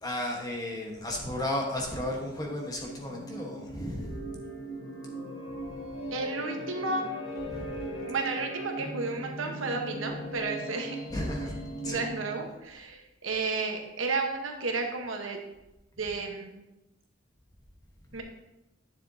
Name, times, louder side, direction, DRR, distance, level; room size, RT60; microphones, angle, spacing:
voice 1, 0.0-4.3 7.5-7.8 11.1-11.6 11.8-12.0, left 1 dB, 20° left, -1 dB, 1.2 m, -34 dB
sound 1, 1.2-12.6, right 1 dB, 75° left, 1.5 m, -39 dB
voice 2, 6.1-7.1 8.1-11.0 11.8-15.4 16.0-16.6 18.1-18.2, right 3 dB, 80° right, 2 dB, 1.2 m, -32 dB
10.0 x 6.9 x 2.8 m, 0.94 s
head